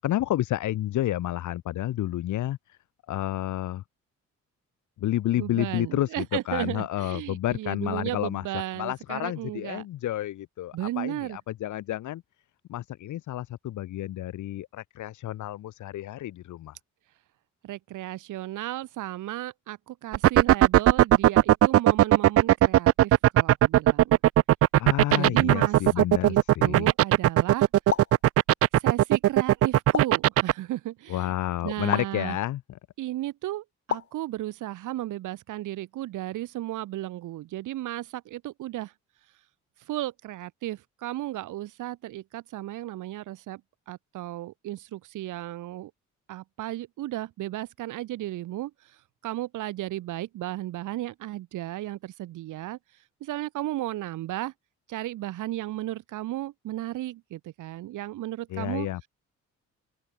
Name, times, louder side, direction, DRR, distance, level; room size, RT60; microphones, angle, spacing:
voice 1, 0.0-2.8 3.1-3.8 5.0-8.4 8.8-12.2 12.7-16.7 24.8-26.9 31.1-32.6 58.5-59.1, left 14 dB, 75° left, 1.7 m, -30 dB
voice 2, 5.3-9.9 10.7-11.4 17.6-24.2 25.1-26.4 26.6-27.7 28.7-31.3 31.6-32.4 33.0-38.9 39.9-43.6 43.9-45.9 46.3-49.0 49.2-52.8 53.2-54.5 54.9-58.9, right 15 dB, 85° right, 2.9 m, -34 dB
sound 1, 20.1-30.5, right 13 dB, 50° right, 0.4 m, -17 dB
sound 2, 27.9-28.2 29.9-30.3 31.9-32.2 33.9-34.2, left 8 dB, 50° left, 2.2 m, -30 dB
open air
cardioid pair, 90°, 30 cm